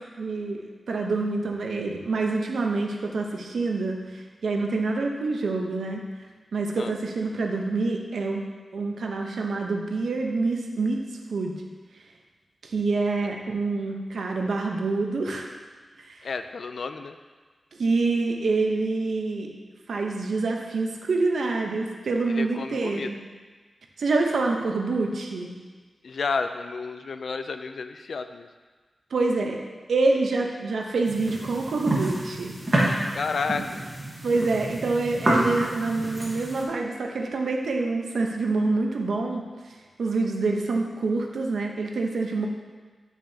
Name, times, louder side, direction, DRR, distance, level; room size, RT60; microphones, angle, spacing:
voice 1, 0.2-6.0 6.5-8.4 8.7-11.0 11.3-11.5 12.6-15.5 16.1-16.2 17.8-19.5 19.9-23.1 24.0-25.5 29.1-29.6 29.9-32.5 34.2-39.4 40.0-42.5, right 3 dB, 80° right, 2 dB, 0.8 m, -26 dB
voice 2, 16.2-17.2 22.3-23.1 26.0-28.5 33.1-33.8, left 4 dB, 65° left, 9 dB, 0.4 m, -31 dB
sound 1, 31.0-36.6, right 1 dB, 30° right, 1.2 m, -28 dB
8.9 x 5.9 x 2.8 m, 1.4 s
wide cardioid pair, 170°, 0 cm